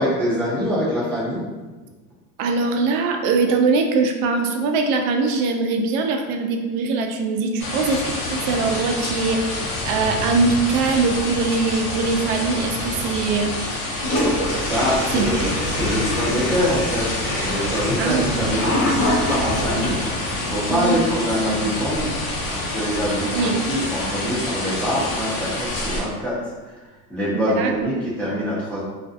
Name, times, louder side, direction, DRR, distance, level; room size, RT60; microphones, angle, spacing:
voice 1, 0.0-1.4 14.7-15.5 15.8-17.1 17.4-22.1 22.5-26.4 26.7-26.8 27.1-28.8, equal, 5° left, -8 dB, 0.5 m, -24 dB
voice 2, 2.4-13.5 15.1-15.5 18.0-18.6 20.7-21.0 23.3-23.5 27.3-27.7, right 4 dB, 55° right, 4 dB, 0.5 m, -22 dB
sound 1, 7.6-26.0, left 2 dB, 70° left, 0.8 m, -27 dB
Toilet flush, 14.0-20.1, left 1 dB, 45° left, 1.0 m, -25 dB
2.4 x 2.2 x 2.5 m, 1.2 s
supercardioid pair, 110°, 45 cm